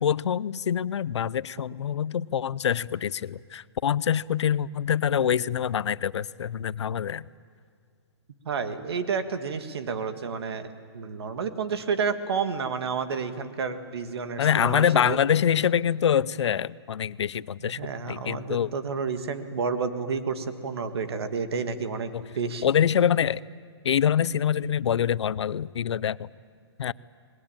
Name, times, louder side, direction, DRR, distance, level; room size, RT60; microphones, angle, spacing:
voice 1, 0.0-7.3 14.4-17.8 18.1-18.7 22.1-22.2 22.6-23.4 23.8-26.3 26.8-26.9, left 9 dB, 80° left, 20 dB, 0.6 m, -25 dB
voice 2, 8.5-10.7 10.9-15.2 17.6-22.7, right 5 dB, 65° right, 9 dB, 1.8 m, -30 dB
25.0 x 20.5 x 9.0 m, 2.1 s
hypercardioid pair, 170°, 14 cm